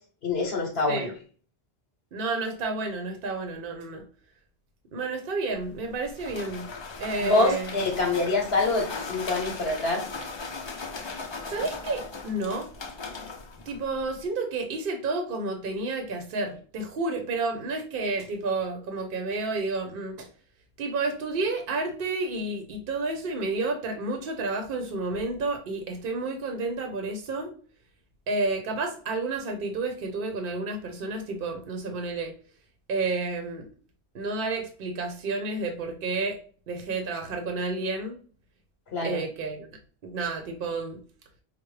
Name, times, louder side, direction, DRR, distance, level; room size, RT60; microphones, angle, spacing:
voice 1, 0.2-1.1 7.2-10.0 38.9-39.2, left 2 dB, 70° left, 1 dB, 1.0 m, -25 dB
voice 2, 2.1-4.0 4.9-6.7 7.0-7.7 11.5-12.7 13.7-20.3 20.8-27.5 28.3-32.3 32.9-33.7 34.1-36.4 36.7-38.2 39.0-39.7 40.0-41.0, right 3 dB, 60° right, 5 dB, 0.8 m, -30 dB
sound 1, 5.5-14.3, left 4 dB, 45° left, 0.3 m, -38 dB
4.5 x 2.1 x 3.1 m, 0.42 s
omnidirectional pair, 1.1 m